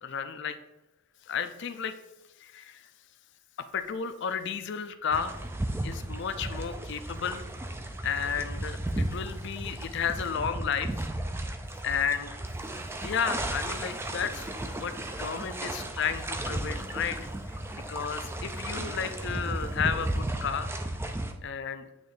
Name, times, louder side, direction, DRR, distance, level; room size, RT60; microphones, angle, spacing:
voice 1, 0.0-0.6 1.3-2.0 2.4-2.9 3.6-5.4 5.8-7.4 8.0-11.0 11.8-12.4 13.0-14.5 14.8-17.2 17.9-20.7 21.4-21.9, left 7 dB, 50° left, 10 dB, 0.4 m, -32 dB
sound 1, 5.1-21.3, right 1 dB, 10° right, 0.3 m, -34 dB
8.6 x 3.1 x 3.9 m, 0.94 s
head